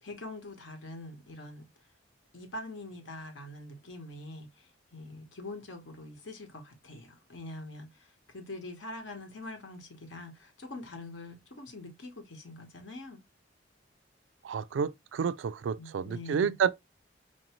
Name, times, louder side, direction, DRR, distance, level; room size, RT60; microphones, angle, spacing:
voice 1, 0.0-1.7 2.3-13.2 15.8-16.5, left 2 dB, 85° left, 1.1 m, -44 dB
voice 2, 14.4-16.7, right 7 dB, 80° right, 0.3 m, -30 dB
4.5 x 2.6 x 2.9 m
head